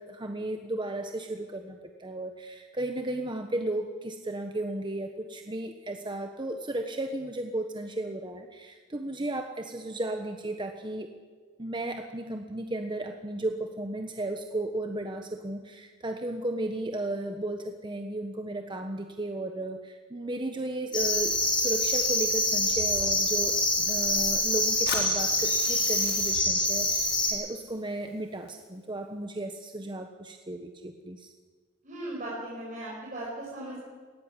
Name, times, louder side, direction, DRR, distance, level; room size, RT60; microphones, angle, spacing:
voice 1, 0.0-11.1 11.6-31.3, right 1 dB, 25° right, 5 dB, 1.2 m, -34 dB
sound 1, 20.9-27.3, left 1 dB, 20° left, 7.4 m, -26 dB
Fire, 24.9-28.9, left 5 dB, 50° left, 4.0 m, -41 dB
voice 2, 31.8-33.8, right 1 dB, 40° right, -6 dB, 6.0 m, -37 dB
19.0 x 16.5 x 9.8 m, 1.5 s
head